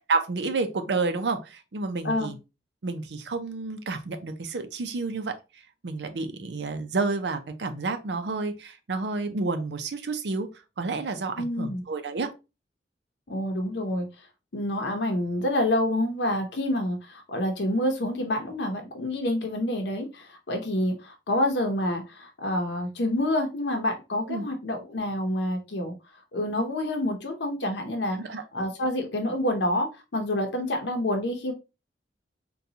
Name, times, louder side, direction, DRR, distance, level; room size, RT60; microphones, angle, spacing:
voice 1, 0.1-2.4 2.8-5.3 5.8-10.5 10.8-12.3 24.3-24.5 28.2-28.4, right 3 dB, 75° right, 0.5 m, -30 dB
voice 2, 11.4-11.8 13.3-14.1 14.5-25.9 26.3-28.2 28.5-31.5, left 1 dB, 85° left, 0.8 m, -27 dB
3.9 x 2.3 x 2.7 m
head